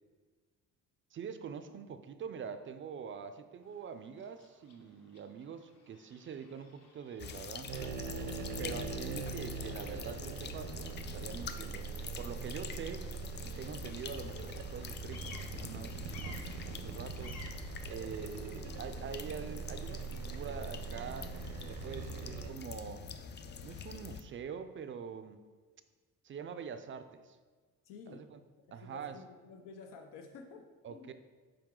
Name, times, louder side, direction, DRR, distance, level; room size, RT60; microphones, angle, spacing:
voice 1, 1.1-8.0 8.6-11.9 12.2-13.1 13.4-17.4 17.9-23.1 23.6-25.4 26.2-27.4 28.1-28.4 28.7-29.2 30.8-31.1, right 6 dB, 40° right, 10 dB, 0.4 m, -45 dB
Bird vocalization bird call bird song, 3.6-22.3, left 3 dB, 55° left, 1.1 m, -59 dB
sound 1, 7.2-24.2, left 6 dB, 35° left, 0.4 m, -46 dB
sound 2, 7.7-22.5, right 5 dB, 80° right, 0.8 m, -42 dB
voice 2, 8.5-8.9 18.0-18.2 27.8-28.3 28.7-31.1, left 5 dB, 80° left, 4 dB, 0.7 m, -51 dB
7.7 x 4.8 x 3.7 m, 1.4 s
cardioid pair, 135°, 32 cm